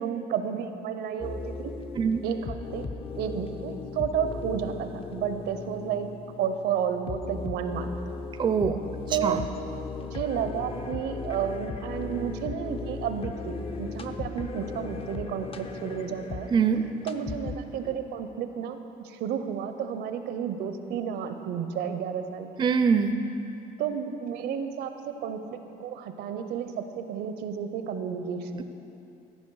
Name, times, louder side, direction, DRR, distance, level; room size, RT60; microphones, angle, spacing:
voice 1, 0.0-1.7 2.2-2.9 3.1-6.1 6.4-7.9 9.1-9.5 9.9-16.5 17.0-22.5 23.8-24.9 25.2-28.6, right 8 dB, 75° right, 8 dB, 0.6 m, -32 dB
sound 1, 1.2-18.0, left 4 dB, 35° left, 0.5 m, -37 dB
voice 2, 8.4-8.8 9.1-9.4 16.5-16.8 22.6-23.2, right 6 dB, 25° right, 8 dB, 0.4 m, -23 dB
14.0 x 5.6 x 4.7 m, 2.9 s
cardioid pair, 110°, 17 cm